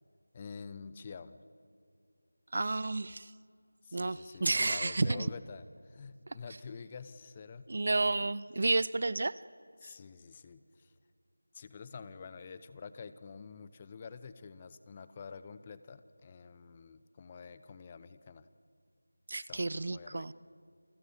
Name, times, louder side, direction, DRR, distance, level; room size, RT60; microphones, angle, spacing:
voice 1, 0.3-1.4 3.8-7.7 9.8-10.9 11.5-18.5 19.4-20.3, left 5 dB, 20° left, 14 dB, 0.8 m, -48 dB
voice 2, 2.5-3.3 3.9-5.3 7.7-9.4 9.8-9.9 19.3-20.3, right 2 dB, 45° right, 20 dB, 0.6 m, -31 dB
29.0 x 21.0 x 8.3 m, 2.3 s
figure-of-eight pair, 170°, 0 cm